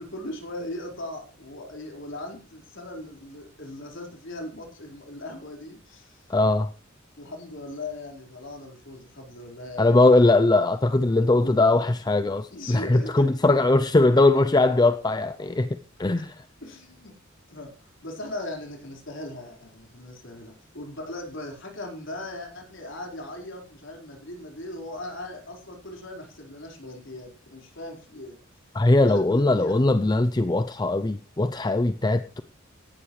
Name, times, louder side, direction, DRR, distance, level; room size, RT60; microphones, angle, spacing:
voice 1, 0.0-6.3 7.2-10.0 11.3-11.9 12.5-13.5 16.6-17.1 17.5-17.7 18.0-28.4 29.0-29.9, left 1 dB, 65° left, 4.6 m, -39 dB
voice 2, 6.3-6.7 9.8-15.7 16.0-16.3 28.7-32.4, left 2 dB, 20° left, 0.5 m, -20 dB
17.5 x 12.0 x 3.2 m
head